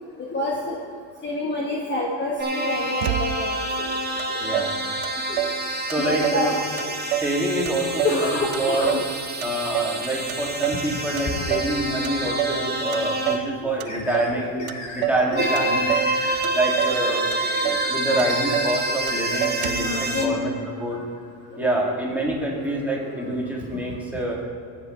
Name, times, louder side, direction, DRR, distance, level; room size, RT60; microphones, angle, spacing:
voice 1, 0.2-0.8 1.2-3.9 5.3-5.4 6.0-6.6 6.8-6.9 8.0-9.0 10.7-10.8 11.3-11.4 12.5-12.6 14.5-14.6 15.3-15.8 16.3-16.4 16.8-17.2 17.5-17.6 18.9-19.0 19.6-20.3 21.5-21.7 22.1-22.2 22.5-22.6 23.0-23.3, left 2 dB, 25° left, -2 dB, 1.2 m, -28 dB
sound 1, 2.4-13.4 15.3-20.3, right 2 dB, 25° right, 1.1 m, -27 dB
Motor vehicle (road), 3.0-3.7 4.2-4.3 4.5-5.6 5.9-6.5 6.8-7.4 7.7-9.1 9.4-10.0 10.3-10.9 11.2-11.8 12.0-12.6 12.9-13.5 13.8-14.4 14.7-15.3 15.6-16.1 16.4-17.0 17.3-17.4 17.6-17.9 18.2-18.8 19.1-19.2 19.4-20.0, right 15 dB, 65° right, 0.6 m, -28 dB
voice 2, 5.8-6.5 7.1-8.9 9.4-14.6 14.9-16.0 16.5-17.2 17.6-20.5 20.8-21.0 21.6-24.4, right 1 dB, 5° right, -3 dB, 2.2 m, -26 dB
sound 2, 13.8-19.8, left 2 dB, 45° left, 2.8 m, -38 dB
20.0 x 7.5 x 3.2 m, 2.2 s
cardioid pair, 135°, 44 cm